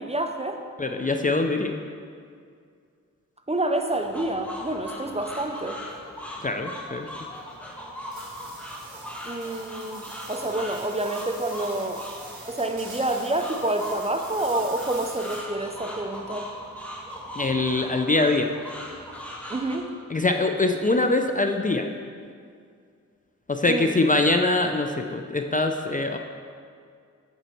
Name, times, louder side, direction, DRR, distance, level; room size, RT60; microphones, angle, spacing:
voice 1, 0.0-0.6 3.5-5.8 9.2-12.0 12.5-16.5 19.5-19.9 23.7-24.0, right 2 dB, 20° right, 5 dB, 0.6 m, -28 dB
voice 2, 0.8-1.8 6.4-7.1 17.4-18.5 20.1-21.9 23.5-26.2, left 2 dB, 25° left, 5 dB, 0.5 m, -23 dB
sound 1, 3.9-19.8, equal, 5° left, 1.3 m, -39 dB
sound 2, 8.1-15.7, right 2 dB, 60° right, 2.5 m, -45 dB
8.2 x 7.4 x 4.4 m, 2.2 s
wide cardioid pair, 85°, 32 cm